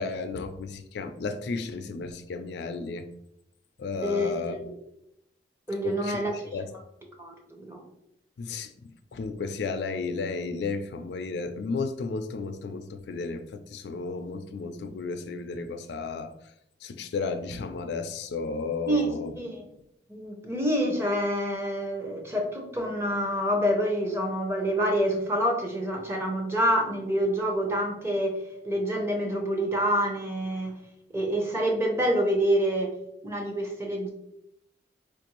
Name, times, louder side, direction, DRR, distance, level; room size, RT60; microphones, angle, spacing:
voice 1, 0.0-3.1 3.8-4.6 5.8-6.2 6.5-6.7 8.4-8.7 9.1-16.3 16.8-19.3, left 4 dB, 70° left, 8 dB, 0.3 m, -33 dB
voice 2, 4.0-4.7 5.7-6.3 7.2-7.8 18.9-19.7 20.1-28.4 28.6-30.8 31.1-32.9 33.2-34.1, equal, 15° right, 1 dB, 0.6 m, -27 dB
4.4 x 2.5 x 3.0 m, 0.78 s
head